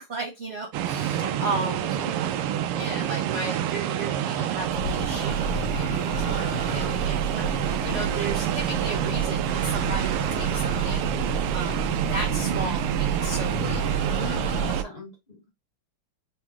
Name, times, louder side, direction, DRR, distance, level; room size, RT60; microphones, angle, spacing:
voice 1, 0.0-1.9 2.7-11.1 11.5-13.8, right 2 dB, 50° right, 0.8 m, -35 dB
sound 1, 0.7-14.8, right 10 dB, 90° right, 1.5 m, -28 dB
voice 2, 1.1-2.1 8.0-8.2 14.2-15.5, left 2 dB, 20° left, 1.6 m, -40 dB
Church bell, 4.6-14.8, right 3 dB, 40° left, 1.4 m, -31 dB
4.1 x 3.6 x 3.0 m
omnidirectional pair, 2.4 m